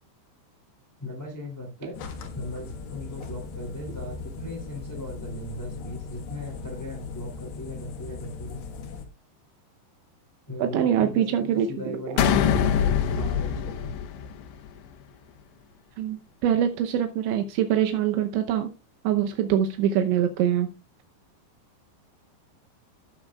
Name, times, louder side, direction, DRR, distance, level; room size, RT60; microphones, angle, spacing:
voice 1, 1.0-2.0 2.3-8.6 10.5-11.2 11.5-13.9, left 1 dB, 10° left, 1 dB, 1.1 m, -38 dB
sound 1, 1.9-9.1, left 4 dB, 65° left, 3.0 m, -38 dB
voice 2, 10.6-11.9 16.0-18.7 19.0-20.7, right 10 dB, 85° right, 6 dB, 3.1 m, -24 dB
sound 2, 12.2-14.8, left 8 dB, 80° left, 3.3 m, -24 dB
18.5 x 7.3 x 2.3 m, 0.28 s
omnidirectional pair, 5.2 m